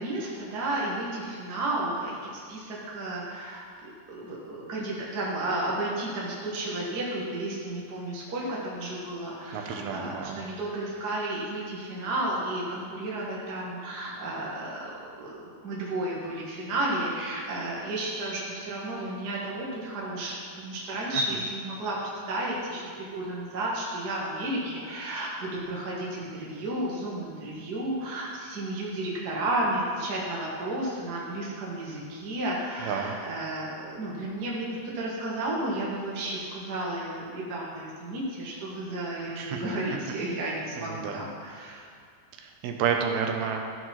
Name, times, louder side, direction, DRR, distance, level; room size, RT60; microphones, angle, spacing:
voice 1, 0.0-3.6 4.1-41.8, right 1 dB, 45° right, -5 dB, 1.3 m, -32 dB
voice 2, 9.5-10.4 21.1-21.2 32.8-33.2 39.4-39.7 40.9-41.2 42.4-43.6, right 7 dB, 80° right, 3 dB, 2.7 m, -30 dB
14.0 x 5.0 x 5.8 m, 2.2 s
omnidirectional pair, 4.4 m